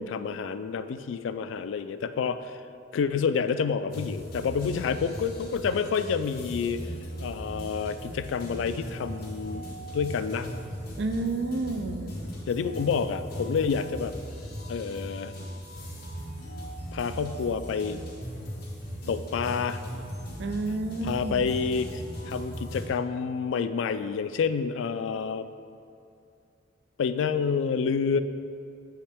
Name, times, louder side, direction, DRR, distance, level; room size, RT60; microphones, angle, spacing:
voice 1, 0.0-2.6 2.9-6.9 7.2-9.7 9.9-10.6 12.5-14.1 14.7-15.4 16.9-18.0 19.1-19.8 21.0-25.5 27.0-28.2, left 6 dB, 80° left, 11 dB, 0.3 m, -28 dB
sound 1, 3.9-22.9, equal, 50° left, 1.7 m, -38 dB
voice 2, 11.0-12.2 20.4-21.5, right 2 dB, 65° right, 8 dB, 0.4 m, -31 dB
7.9 x 5.6 x 3.4 m, 2.5 s
head